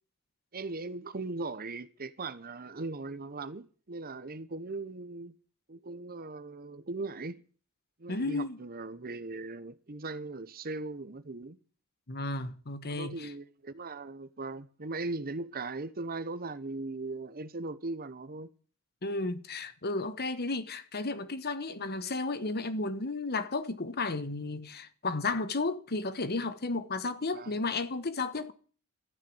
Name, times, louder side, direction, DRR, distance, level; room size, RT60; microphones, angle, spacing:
voice 1, 0.5-5.3 5.7-7.4 8.0-11.6 12.9-18.5 27.3-27.5, right 3 dB, 45° right, 1.0 m, -39 dB
voice 2, 8.1-8.6 12.1-13.3 19.0-28.5, left 3 dB, 50° left, 1.2 m, -33 dB
13.5 x 9.3 x 8.7 m
head